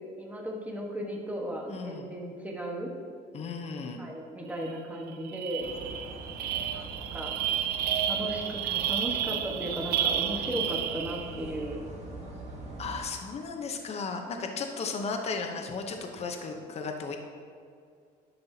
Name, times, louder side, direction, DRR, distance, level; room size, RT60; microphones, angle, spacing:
voice 1, 0.2-2.9 4.0-5.7 6.7-7.4 8.1-11.8, right 1 dB, 10° right, -1 dB, 1.2 m, -36 dB
voice 2, 1.7-2.1 3.3-4.0 12.8-17.2, left 4 dB, 40° left, 3 dB, 0.8 m, -35 dB
Craft Tunnel Crash Pan, 4.6-4.8 5.1-11.5, right 9 dB, 70° right, 0.5 m, -31 dB
sound 1, 5.6-13.0, right 2 dB, 40° right, 1.5 m, -43 dB
10.5 x 5.6 x 2.8 m, 2.3 s
cardioid pair, 110°, 17 cm